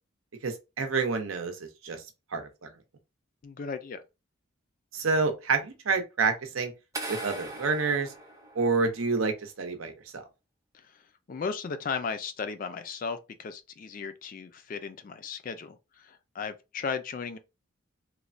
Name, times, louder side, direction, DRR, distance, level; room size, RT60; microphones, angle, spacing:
voice 1, 0.4-2.0 2.3-2.7 4.9-6.7 7.1-8.1 8.5-10.2, right 4 dB, 85° right, 0.7 m, -28 dB
voice 2, 3.4-4.0 10.7-11.0 11.3-17.4, left 5 dB, 40° left, 0.3 m, -36 dB
sound 1, 6.9-9.0, right 2 dB, 15° right, 0.5 m, -39 dB
3.0 x 2.1 x 2.5 m
head